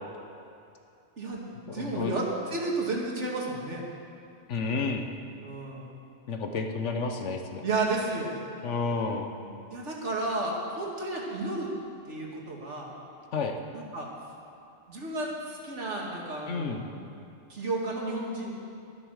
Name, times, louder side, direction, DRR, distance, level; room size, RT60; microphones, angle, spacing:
voice 1, 1.2-3.8 5.4-5.9 7.6-8.4 9.7-11.7 12.1-12.9 13.7-14.1 14.9-16.8 17.5-18.5, right 2 dB, 65° right, -2 dB, 2.3 m, -32 dB
voice 2, 1.7-2.1 4.5-5.1 6.3-7.7 8.6-9.3 13.3-13.5 16.5-16.9, left 4 dB, 70° left, 4 dB, 1.3 m, -31 dB
11.5 x 11.5 x 6.4 m, 2.6 s
omnidirectional pair, 1.3 m